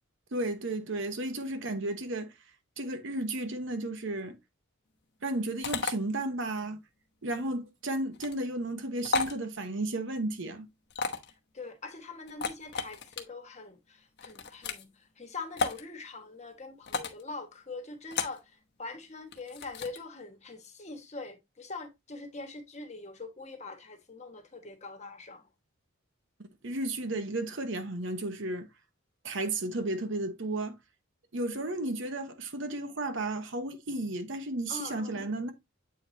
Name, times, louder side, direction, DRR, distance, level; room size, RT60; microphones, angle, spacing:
voice 1, 0.3-2.3 2.8-4.4 5.2-6.8 7.2-10.7 26.6-28.7 29.2-30.8 31.3-35.5, right 2 dB, 60° right, 1.0 m, -33 dB
sound 1, 5.6-5.9 8.1-8.4 9.0-9.4 10.9-11.3 12.3-13.2 14.2-14.8 15.6-15.8 16.9-17.2 18.1-18.4 19.3-20.0, left 4 dB, 55° left, 1.0 m, -33 dB
voice 2, 11.5-25.5 31.5-31.6 34.7-35.3, left 3 dB, 35° left, 1.4 m, -43 dB
8.0 x 4.8 x 2.7 m
head